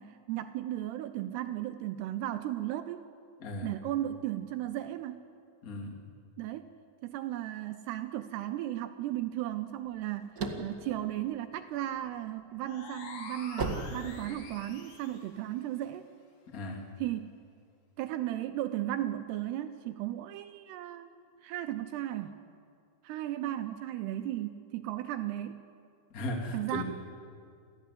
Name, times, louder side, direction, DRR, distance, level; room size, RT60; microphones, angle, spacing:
voice 1, 0.0-3.0 3.6-5.2 6.4-6.7 7.0-16.1 17.0-17.3 18.0-21.1 21.4-22.4 23.0-25.7 26.5-26.8, right 13 dB, 80° right, 9 dB, 2.7 m, -35 dB
voice 2, 5.6-6.0 16.5-16.9 26.1-26.8, left 1 dB, 30° left, 1 dB, 2.0 m, -36 dB
sound 1, 9.8-12.0 12.5-14.8, right 3 dB, 40° right, 1.4 m, -36 dB
sound 2, 12.6-15.3, left 4 dB, 90° left, 4.8 m, -46 dB
28.5 x 15.0 x 8.4 m, 2.3 s
omnidirectional pair, 4.9 m